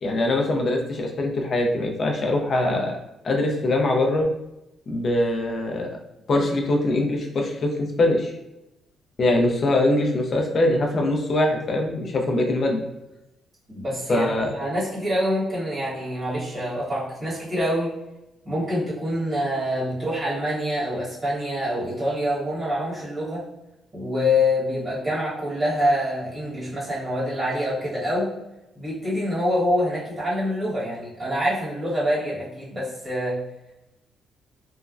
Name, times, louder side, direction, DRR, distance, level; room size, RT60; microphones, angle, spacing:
voice 1, 0.0-3.0 3.2-4.3 4.9-5.9 6.3-8.3 9.2-12.8 14.1-14.5, left 2 dB, 40° left, 1 dB, 0.5 m, -22 dB
voice 2, 13.7-14.3 14.5-17.9 18.4-23.5 23.9-28.3 28.7-33.4, left 1 dB, 25° right, -9 dB, 1.3 m, -26 dB
3.1 x 2.1 x 2.4 m, 0.92 s
cardioid pair, 150°, 0 cm